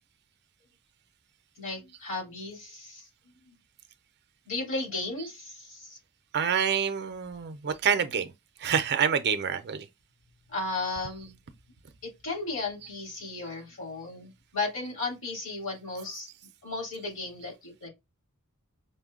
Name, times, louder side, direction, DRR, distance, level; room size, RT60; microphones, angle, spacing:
voice 1, 1.6-3.0 3.5-3.6 4.5-6.0 10.5-11.3 12.0-16.3 16.6-17.9, left 3 dB, 65° left, 2.9 m, -35 dB
voice 2, 6.3-8.3 8.6-9.9, right 7 dB, 50° right, 0.5 m, -27 dB
5.5 x 2.2 x 3.6 m
head